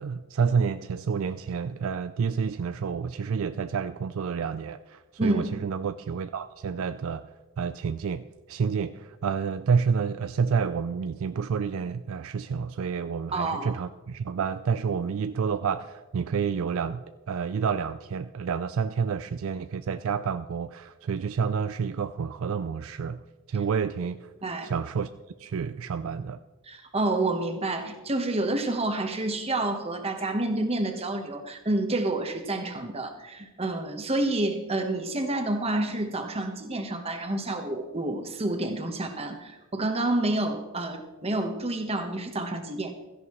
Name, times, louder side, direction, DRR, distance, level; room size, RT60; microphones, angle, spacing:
voice 1, 0.0-7.3 7.6-23.2 23.5-24.3 24.6-25.1 25.4-26.4, right 6 dB, 60° right, 12 dB, 0.4 m, -29 dB
voice 2, 13.3-13.7 24.4-24.7 26.7-42.9, right 2 dB, 25° right, 4 dB, 1.2 m, -29 dB
16.0 x 14.0 x 3.2 m, 1.2 s
head